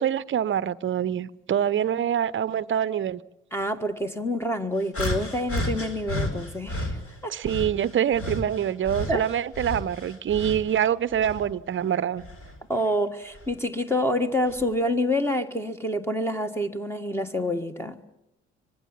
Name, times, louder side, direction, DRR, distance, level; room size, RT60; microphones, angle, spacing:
voice 1, 0.0-3.2 7.3-12.2, right 9 dB, 35° right, 0.8 m, -25 dB
voice 2, 3.5-7.0 7.2-7.3 9.1-9.2 12.7-18.1, left 1 dB, 5° left, 1.6 m, -27 dB
sound 1, 4.9-7.0 7.4-10.7 11.1-12.6 13.3-13.5 14.5-14.6, left 1 dB, 45° left, 4.7 m, -32 dB
25.5 x 19.5 x 7.4 m
figure-of-eight pair, 50°, 33 cm